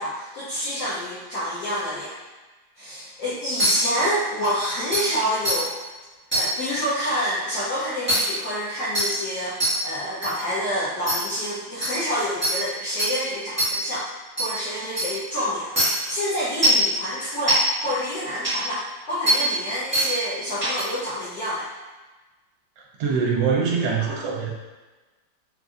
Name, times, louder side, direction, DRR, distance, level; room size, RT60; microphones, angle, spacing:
voice 1, 0.0-2.1 2.8-5.7 6.3-14.1 14.4-18.8 19.1-21.7, equal, 65° left, -10 dB, 1.1 m, -28 dB
sound 1, 3.6-3.7 4.4-4.5 4.9-5.0 5.4-5.6 6.3-6.4 8.1-8.2 8.9-9.1 9.6-9.7 10.2-10.3 11.1-11.2 11.8-11.9 12.4-12.5 13.0-13.1 13.6-13.7 14.4-14.5 15.0-15.1 15.8-15.9 16.6-16.8 17.5-17.6 18.4-18.5 19.3-19.4 19.9-20.1 20.6-20.8, right 1 dB, 5° right, 1.1 m, -21 dB
voice 2, 23.0-24.5, right 5 dB, 75° right, -2 dB, 1.3 m, -23 dB
3.7 x 2.4 x 2.4 m, 1.2 s
omnidirectional pair, 2.1 m